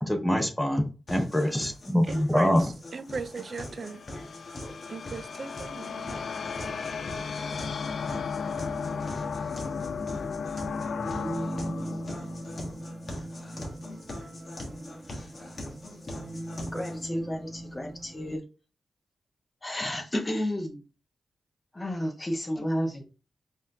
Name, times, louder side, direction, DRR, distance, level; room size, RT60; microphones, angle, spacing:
voice 1, 0.0-2.6, equal, 5° left, 0.7 m, -25 dB
sound 1, 1.1-17.1, left 1 dB, 50° left, 1.2 m, -42 dB
voice 2, 2.1-2.6 2.9-4.0 4.9-6.3, right 4 dB, 55° right, 0.4 m, -37 dB
sound 2, 3.1-13.4, left 5 dB, 75° left, 0.3 m, -35 dB
sound 3, 8.5-18.4, right 1 dB, 20° right, 1.0 m, -40 dB
voice 3, 16.7-18.4 19.6-20.8 21.7-23.0, equal, 25° left, 1.2 m, -31 dB
4.1 x 2.7 x 3.7 m
cardioid pair, 75°, 0 cm